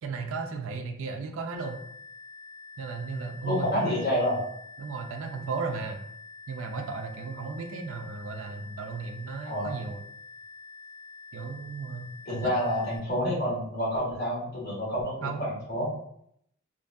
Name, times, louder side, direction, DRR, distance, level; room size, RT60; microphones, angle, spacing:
voice 1, 0.0-1.8 2.8-4.0 4.8-6.0 6.5-10.0 11.3-12.5 15.2-15.4, right 4 dB, 75° right, 4 dB, 0.3 m, -35 dB
sound 1, 1.6-13.0, left 3 dB, 35° right, 1.2 m, -47 dB
voice 2, 3.4-4.4 9.4-9.8 12.2-15.9, equal, 50° left, -7 dB, 1.4 m, -28 dB
2.9 x 2.6 x 2.2 m, 0.72 s
head